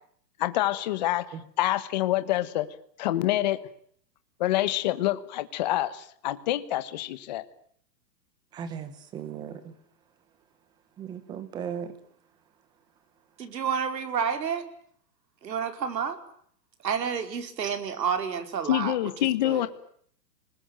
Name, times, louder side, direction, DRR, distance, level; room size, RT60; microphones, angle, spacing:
voice 1, 0.4-2.7 3.0-3.6 4.4-7.4 18.7-19.7, left 14 dB, 25° left, 12 dB, 1.2 m, -26 dB
voice 2, 8.5-9.7 11.0-11.9, right 8 dB, 10° right, 13 dB, 1.1 m, -37 dB
voice 3, 13.4-14.6 15.4-16.2 16.8-19.1 19.4-19.7, right 7 dB, 90° right, 8 dB, 4.8 m, -30 dB
30.0 x 20.5 x 9.0 m, 0.64 s
hypercardioid pair, 175°, 49 cm